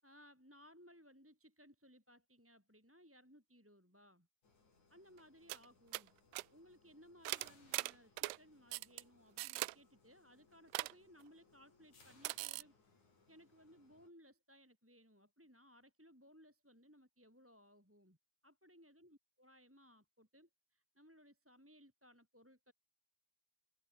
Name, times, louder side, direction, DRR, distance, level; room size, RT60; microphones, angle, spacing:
voice 1, 0.0-4.3 4.9-6.1 6.5-12.7 13.3-18.2 18.4-22.7, equal, 5° right, 5.5 m, -63 dB
sound 1, 4.4-14.1, left 4 dB, 45° left, 7.8 m, -70 dB
sound 2, 5.2-5.3 5.5-5.7 5.9-6.1 6.3-6.4 7.3-8.4 8.7-9.0 9.4-9.8 10.7-10.9 12.2-12.6, right 22 dB, 90° right, 2.7 m, -40 dB
open air
omnidirectional pair, 4.6 m